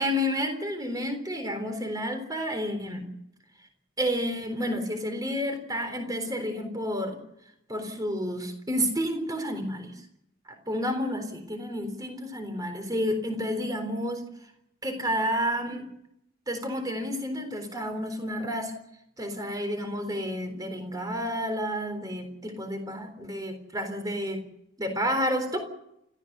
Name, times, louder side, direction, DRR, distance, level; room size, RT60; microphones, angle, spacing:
voice 1, 0.0-3.1 4.0-7.2 7.7-10.0 10.5-14.2 14.8-15.9 16.5-18.7 19.2-24.4 24.8-25.6, equal, 15° right, 7 dB, 3.8 m, -30 dB
29.0 x 15.0 x 6.8 m, 0.79 s
head